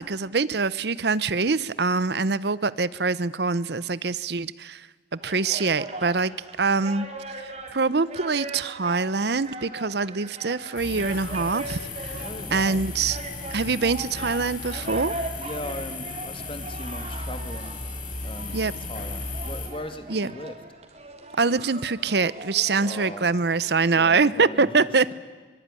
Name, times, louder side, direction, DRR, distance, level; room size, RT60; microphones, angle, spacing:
voice 1, 0.0-4.9 5.2-12.2 12.5-13.2 13.5-15.1 18.5-18.7 20.1-20.3 21.4-25.1, right 4 dB, 65° right, 18 dB, 0.8 m, -24 dB
sound 1, 5.2-24.4, right 2 dB, 35° right, 3.7 m, -40 dB
sound 2, 10.8-19.7, left 3 dB, 45° left, 5.5 m, -35 dB
voice 2, 12.2-12.8 15.4-17.8 18.2-20.6 22.8-23.3 23.9-25.1, left 1 dB, 30° left, 9 dB, 2.3 m, -38 dB
24.0 x 23.5 x 9.9 m, 1.4 s
head